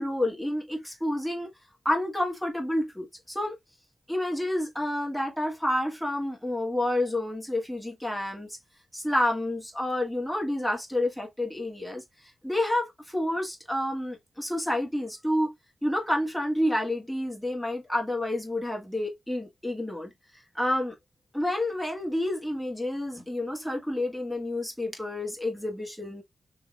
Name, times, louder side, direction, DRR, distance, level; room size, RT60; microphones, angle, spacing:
voice 1, 0.0-1.5 1.8-3.5 4.1-8.5 8.9-12.0 12.4-15.5 15.8-20.1 20.5-20.9 21.3-26.2, left 1 dB, ahead, 1.6 m, -29 dB
3.7 x 2.9 x 2.3 m
cardioid pair, 70°, 0 cm